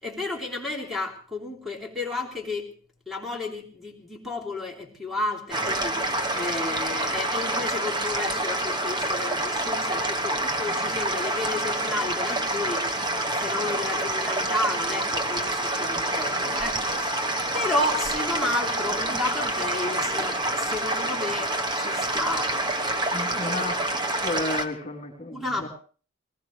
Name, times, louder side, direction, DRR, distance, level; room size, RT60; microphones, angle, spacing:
voice 1, 0.0-2.7 3.1-17.3 17.5-22.5 25.3-25.7, left 2 dB, ahead, 0 dB, 3.4 m, -32 dB
sound 1, 5.5-24.7, right 1 dB, 20° right, 1.0 m, -27 dB
voice 2, 23.1-23.8 24.2-25.7, left 2 dB, 30° left, -4 dB, 3.3 m, -32 dB
22.5 x 19.0 x 3.2 m, 0.40 s
head